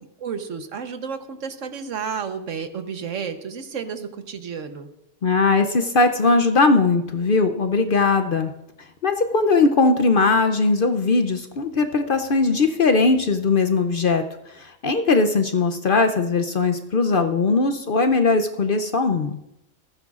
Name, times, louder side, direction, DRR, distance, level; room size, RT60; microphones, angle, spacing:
voice 1, 0.2-4.9, right 6 dB, 70° right, 8 dB, 1.3 m, -31 dB
voice 2, 5.2-8.5 9.0-19.4, left 3 dB, 50° left, 7 dB, 0.7 m, -20 dB
19.5 x 14.5 x 2.4 m, 0.86 s
omnidirectional pair, 1.4 m